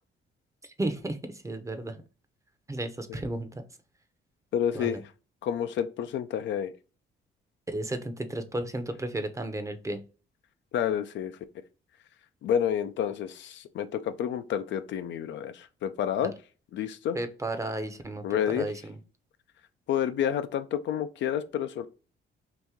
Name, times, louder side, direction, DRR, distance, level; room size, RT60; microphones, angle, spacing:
voice 1, 0.8-2.0 2.7-3.5 4.7-5.0 7.7-10.0 16.2-16.3 17.1-19.0, right 1 dB, 15° right, 0.6 m, -33 dB
voice 2, 4.5-5.0 5.4-6.7 10.7-11.4 12.4-16.3 16.7-17.2 18.2-18.7 19.9-21.9, left 9 dB, 65° left, 0.4 m, -29 dB
3.0 x 2.6 x 3.5 m
cardioid pair, 90°, 20 cm